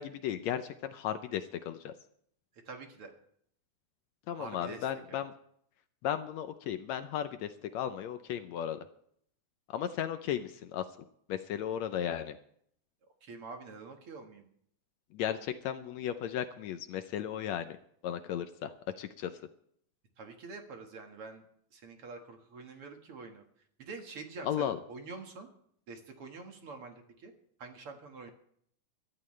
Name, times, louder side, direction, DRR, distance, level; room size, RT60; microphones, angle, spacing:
voice 1, 0.0-1.9 4.3-5.3 6.0-8.8 9.7-10.9 11.3-12.4 15.1-17.8 18.0-19.3 24.4-24.8, left 10 dB, 75° left, 10 dB, 1.8 m, -35 dB
voice 2, 2.7-3.1 4.4-5.2 13.2-14.5 20.2-21.4 21.7-23.4 23.8-25.5 25.9-27.3 27.6-28.3, right 4 dB, 50° right, 4 dB, 2.3 m, -46 dB
22.0 x 13.0 x 3.3 m, 0.66 s
omnidirectional pair, 3.5 m